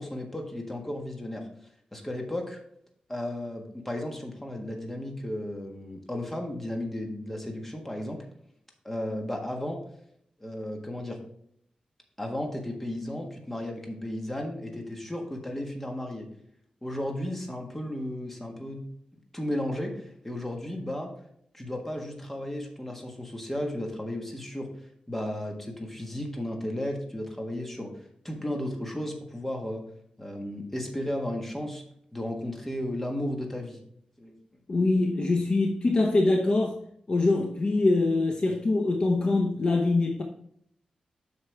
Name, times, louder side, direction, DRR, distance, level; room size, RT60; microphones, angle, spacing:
voice 1, 0.0-1.5 1.9-2.6 3.1-8.2 8.8-9.8 10.4-11.2 12.2-16.3 16.8-18.8 19.3-21.1 21.5-24.7 25.1-27.9 28.2-29.9 30.2-31.8 32.1-33.8 34.2-34.3, left 1 dB, 10° left, 1.5 m, -34 dB
voice 2, 34.7-36.8 37.1-40.2, left 2 dB, 40° left, 0.8 m, -24 dB
8.1 x 5.8 x 3.4 m
wide cardioid pair, 135°, 2 cm